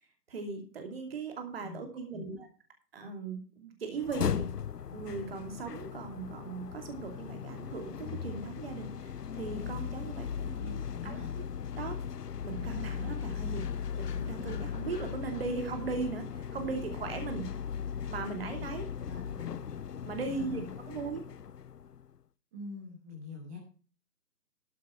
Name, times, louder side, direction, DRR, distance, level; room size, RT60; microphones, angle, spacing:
voice 1, 0.3-2.5 2.9-4.5 4.9-11.2 11.8-12.0 12.4-13.6 14.0-17.5 18.1-18.9 20.0-20.6 20.9-21.2, right 4 dB, 35° right, 5 dB, 2.8 m, -38 dB
voice 2, 1.6-2.4 10.6-11.3 13.4-13.7 19.1-19.6 20.3-20.6 22.5-23.6, left 3 dB, 10° right, 0 dB, 1.3 m, -44 dB
sound 1, 4.0-22.1, left 7 dB, 70° left, 0.8 m, -38 dB
13.0 x 8.4 x 4.5 m, 0.38 s
figure-of-eight pair, 155°, 49 cm